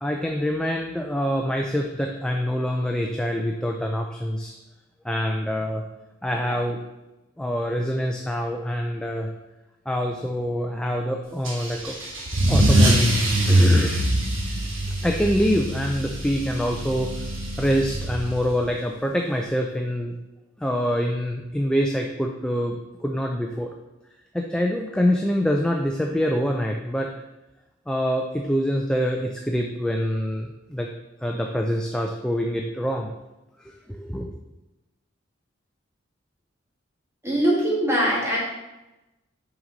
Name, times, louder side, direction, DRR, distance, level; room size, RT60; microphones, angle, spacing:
voice 1, 0.0-4.5 5.0-5.8 6.2-6.8 7.4-9.3 9.9-12.0 12.5-13.1 13.5-14.1 14.9-17.1 17.6-20.2 20.6-23.7 24.3-27.1 27.9-30.9 31.2-33.1 33.6-34.3, equal, 5° left, 1 dB, 0.4 m, -25 dB
Car / Engine starting / Accelerating revving vroom, 11.4-18.6, right 1 dB, 85° right, 1.5 m, -23 dB
voice 2, 37.2-38.4, equal, 15° right, -4 dB, 1.6 m, -22 dB
5.9 x 5.2 x 4.0 m, 1.0 s
head